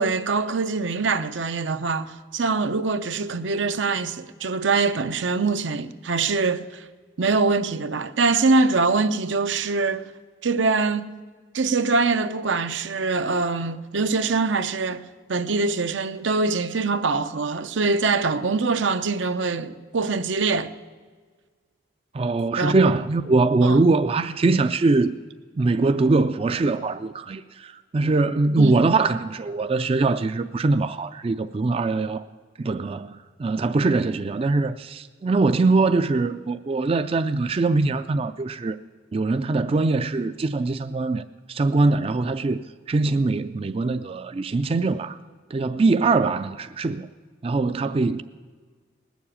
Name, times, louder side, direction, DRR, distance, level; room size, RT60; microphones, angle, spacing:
voice 1, 0.0-6.8 7.2-10.1 10.4-11.1 11.5-15.0 15.3-20.7 22.6-22.7 23.6-23.8 28.6-28.8, right 4 dB, 80° right, 0.7 m, -23 dB
voice 2, 22.1-25.2 25.6-32.2 32.6-38.8 39.1-42.6 42.9-45.2 45.5-47.1 47.4-48.2, right 3 dB, 30° right, 0.4 m, -22 dB
19.5 x 7.2 x 8.7 m
head